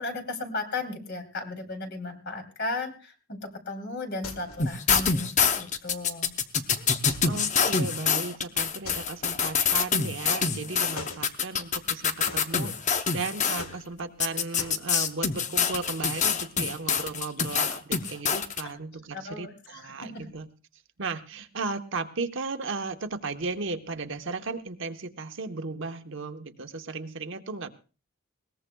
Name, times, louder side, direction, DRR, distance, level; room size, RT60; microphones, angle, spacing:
voice 1, 0.0-6.4 19.1-20.3, left 2 dB, 50° left, 4 dB, 3.0 m, -35 dB
sound 1, 4.2-4.8 7.1-7.6 8.8-9.7 11.0-11.3 12.3-12.9 13.6-14.2 14.6-14.8, left 3 dB, 85° left, 2.1 m, -42 dB
sound 2, 4.6-13.6 14.2-18.6, left 6 dB, 35° left, 0.8 m, -26 dB
voice 2, 7.3-20.5 21.0-27.7, right 3 dB, 60° right, 7 dB, 1.0 m, -35 dB
21.0 x 18.5 x 2.3 m, 0.34 s
head